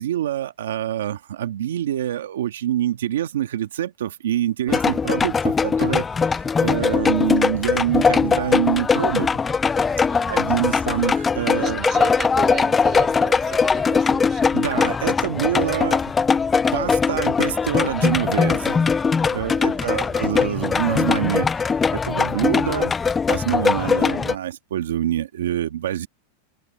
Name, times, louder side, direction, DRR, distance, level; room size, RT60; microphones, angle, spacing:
voice 1, 0.0-9.4 10.3-11.8 14.5-16.0 16.7-18.8 19.3-21.5 21.9-22.9 23.3-26.1, right 11 dB, 90° right, 1.4 m, -26 dB
sound 1, 4.7-24.4, left 5 dB, 15° left, 0.3 m, -21 dB
voice 2, 10.1-10.6 11.6-14.5 19.6-20.4, right 11 dB, 30° right, 4.0 m, -34 dB
supercardioid pair, 130°, 0 cm